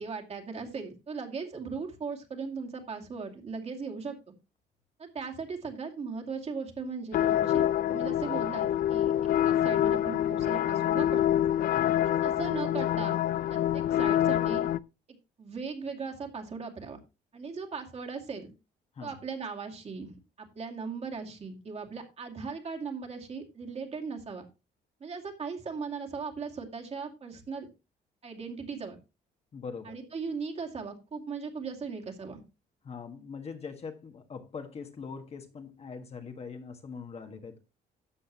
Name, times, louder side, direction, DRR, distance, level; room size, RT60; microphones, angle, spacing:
voice 1, 0.0-4.3 5.0-9.1 9.4-11.2 12.2-14.7 15.4-17.0 17.3-18.5 19.0-20.1 20.4-24.5 25.0-27.7 28.2-29.0 29.8-32.4, right 5 dB, 40° right, 2.4 m, -38 dB
sound 1, 7.1-14.8, left 11 dB, 65° left, 0.5 m, -26 dB
voice 2, 11.7-12.0 18.9-19.2 29.5-30.0 32.8-37.6, left 5 dB, 40° left, 1.5 m, -42 dB
13.0 x 7.8 x 2.9 m
cardioid pair, 120°, 16 cm